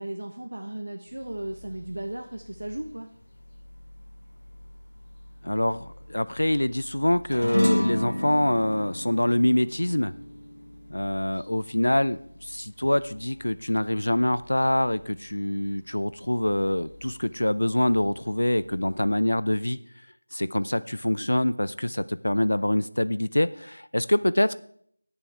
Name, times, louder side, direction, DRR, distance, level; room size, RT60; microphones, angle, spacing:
voice 1, 0.0-3.1, right 1 dB, 60° right, 4 dB, 1.0 m, -35 dB
sound 1, 1.0-19.2, left 1 dB, 25° left, 5.1 m, -51 dB
voice 2, 5.4-10.1 10.9-19.8 20.3-24.5, left 1 dB, 70° left, 15 dB, 0.6 m, -25 dB
sound 2, 7.3-12.0, equal, 85° left, 1.2 m, -30 dB
18.0 x 7.0 x 3.4 m, 0.65 s
figure-of-eight pair, 170°, 0 cm